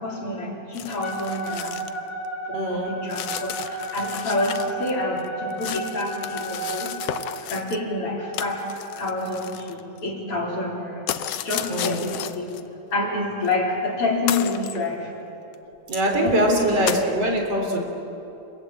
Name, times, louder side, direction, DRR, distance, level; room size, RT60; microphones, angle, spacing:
voice 1, 0.0-1.8 2.5-7.0 7.3-11.0 11.4-12.6 12.9-15.1 16.2-16.8, left 2 dB, 50° left, -2 dB, 4.7 m, -28 dB
sound 1, 0.7-2.0 2.3-2.4 3.1-4.9 5.2-7.8 8.3-10.1 11.1-12.6 13.5-13.6 14.3-14.8 15.5-15.6 16.0-16.1 16.9-17.1, left 11 dB, 70° left, 1.7 m, -33 dB
Wind instrument woodwind instrument, 1.0-7.1, right 2 dB, 25° left, 7.3 m, -33 dB
voice 2, 2.5-3.0 11.6-12.1 15.9-17.8, right 1 dB, 55° right, 2 dB, 4.5 m, -23 dB
28.0 x 22.5 x 8.8 m, 2.9 s
omnidirectional pair, 3.3 m